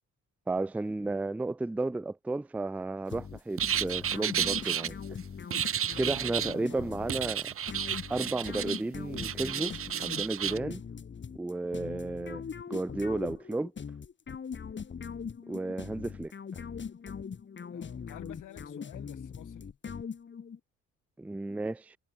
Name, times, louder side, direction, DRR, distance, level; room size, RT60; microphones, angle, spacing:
voice 1, 0.5-5.0 6.0-7.4 8.1-9.7 10.0-10.8 11.3-12.4 12.7-13.7 15.5-16.3 21.2-22.0, right 2 dB, 5° right, 0.4 m, -33 dB
sound 1, 3.1-20.6, left 6 dB, 40° left, 2.2 m, -41 dB
sound 2, 3.6-4.9 5.5-6.6 7.1-8.8 9.1-10.6, right 9 dB, 45° right, 0.9 m, -32 dB
voice 2, 6.4-7.1 17.7-19.7, left 14 dB, 85° left, 5.8 m, -50 dB
cardioid pair, 90°, 30 cm